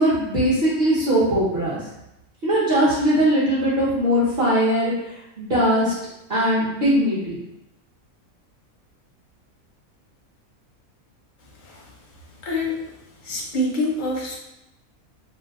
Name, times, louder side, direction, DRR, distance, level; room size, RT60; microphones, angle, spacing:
voice 1, 0.0-1.8 2.4-4.9 5.4-5.9 6.3-7.4, equal, 50° right, -10 dB, 1.0 m, -20 dB
voice 2, 12.4-12.8 13.2-14.3, left 1 dB, 50° left, -2 dB, 0.6 m, -25 dB
2.7 x 2.1 x 3.5 m, 0.88 s
omnidirectional pair, 1.5 m